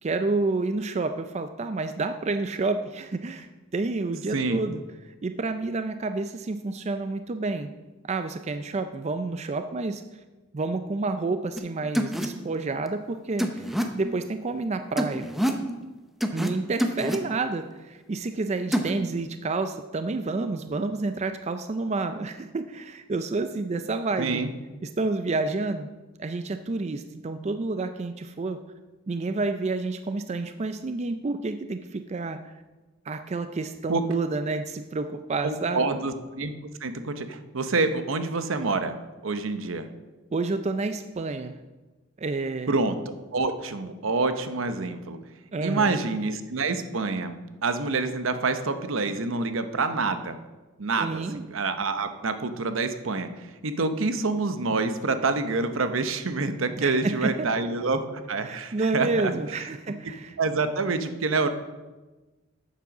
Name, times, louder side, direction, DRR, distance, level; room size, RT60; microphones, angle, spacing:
voice 1, 0.0-3.5 3.7-4.8 5.2-7.7 8.1-10.0 10.5-13.6 13.9-15.3 16.3-24.4 25.0-25.9 26.2-28.6 29.1-32.5 33.1-36.0 40.3-41.6 42.2-42.7 45.5-46.1 51.0-51.4 56.8-57.5 58.4-60.4, right 3 dB, 35° right, 9 dB, 0.4 m, -29 dB
voice 2, 4.3-4.6 24.2-24.5 33.9-34.0 35.4-36.5 36.8-39.0 39.2-39.9 42.7-43.0 43.3-45.2 45.6-50.4 50.8-59.3 60.4-61.5, right 3 dB, 75° right, 9 dB, 0.8 m, -27 dB
sound 1, 11.6-11.7 11.9-12.3 13.4-13.8 15.0-15.6 16.2-16.5 16.8-17.2 18.7-18.9, equal, ahead, 0.7 m, -26 dB
9.2 x 7.4 x 6.0 m, 1.2 s
head